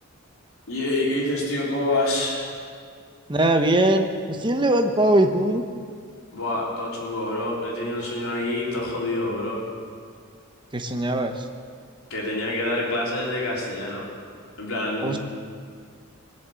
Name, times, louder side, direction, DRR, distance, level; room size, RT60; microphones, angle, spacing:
voice 1, 0.7-2.6 6.3-9.6 12.1-14.0 14.6-15.2, left 1 dB, 85° left, -3 dB, 3.6 m, -27 dB
voice 2, 3.3-5.6 10.7-11.4 15.0-15.2, right 1 dB, 20° right, 5 dB, 1.0 m, -21 dB
20.0 x 7.4 x 7.6 m, 2.1 s
head